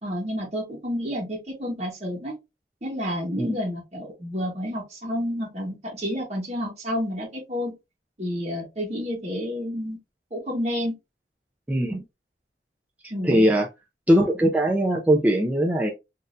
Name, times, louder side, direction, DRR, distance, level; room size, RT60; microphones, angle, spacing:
voice 1, 0.0-2.4 2.8-7.8 8.2-10.0 10.3-10.9 13.1-13.5, equal, 35° right, 1.0 m, -30 dB
voice 2, 11.7-12.0 13.2-13.7 14.1-15.9, equal, 10° right, 0.4 m, -20 dB
4.1 x 2.6 x 2.4 m
head